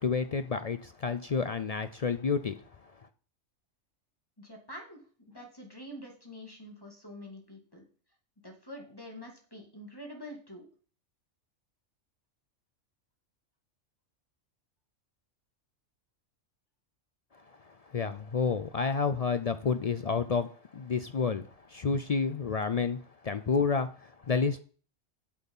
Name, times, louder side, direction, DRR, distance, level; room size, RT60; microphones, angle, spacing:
voice 1, 0.0-2.9 17.6-24.6, left 5 dB, 65° left, 0.3 m, -30 dB
voice 2, 4.4-5.0 5.3-7.8 8.4-10.6, equal, 15° left, 2.3 m, -46 dB
8.4 x 8.1 x 5.4 m
omnidirectional pair, 1.3 m